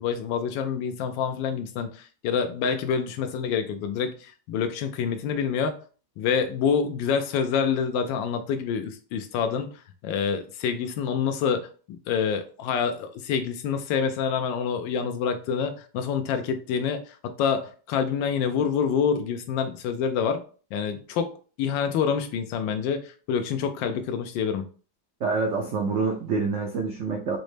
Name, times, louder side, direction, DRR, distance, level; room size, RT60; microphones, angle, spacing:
voice 1, 0.0-5.8 6.2-11.7 12.1-20.4 20.7-21.3 21.6-24.7, left 6 dB, 85° left, 7 dB, 1.3 m, -27 dB
voice 2, 25.2-27.4, right 4 dB, 80° right, 2 dB, 0.6 m, -26 dB
5.2 x 2.1 x 3.1 m, 0.39 s
omnidirectional pair, 2.0 m